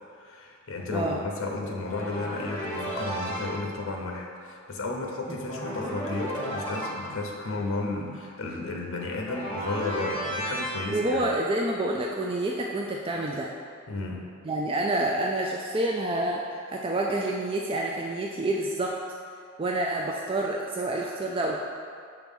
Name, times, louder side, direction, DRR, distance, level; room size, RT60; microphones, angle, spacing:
voice 1, 0.1-11.3 13.9-14.2, left 2 dB, 75° left, 0 dB, 0.8 m, -33 dB
sound 1, 1.8-3.6 5.5-7.2 9.2-10.8, equal, 10° left, 1.3 m, -33 dB
voice 2, 10.9-13.5 14.5-19.0 19.6-21.6, right 1 dB, 25° right, -1 dB, 0.3 m, -28 dB
6.6 x 3.1 x 5.3 m, 2.3 s
head